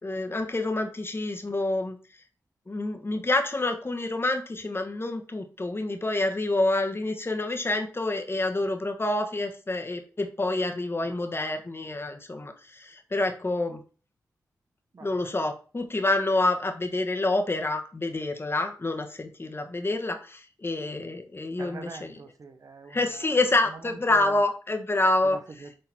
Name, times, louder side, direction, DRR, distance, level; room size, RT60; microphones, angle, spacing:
voice 1, 0.0-2.0 2.7-13.8 15.0-22.1 22.9-25.4, left 2 dB, 35° left, 1.4 m, -27 dB
voice 2, 14.9-15.3 21.6-23.4 23.7-24.4 25.2-25.8, right 4 dB, 55° right, 0.9 m, -43 dB
6.6 x 3.9 x 4.4 m
cardioid pair, 50°, 7 cm